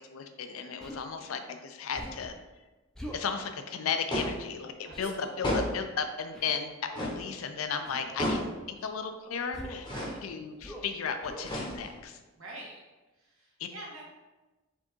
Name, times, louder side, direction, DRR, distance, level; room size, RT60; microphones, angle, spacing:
voice 1, 0.1-2.3 3.1-8.4 8.7-9.9 10.2-12.2 13.6-13.7, left 6 dB, 90° left, 7 dB, 0.5 m, -35 dB
Human voice, 0.8-1.1 1.9-2.3 2.9-3.3 4.9-5.1 6.3-6.6 7.8-8.1 9.5-9.9 10.6-10.9 11.2-11.5, equal, 5° left, 0.4 m, -43 dB
sound 1, 4.1-4.5 5.4-5.9 6.9-7.3 8.2-8.6 9.8-10.2 11.4-12.0, equal, 20° left, 0.8 m, -32 dB
voice 2, 4.8-5.4 9.9-10.2 12.4-12.8 13.2-14.0, right 1 dB, 85° right, -4 dB, 1.4 m, -46 dB
4.5 x 3.5 x 3.0 m, 1.1 s
head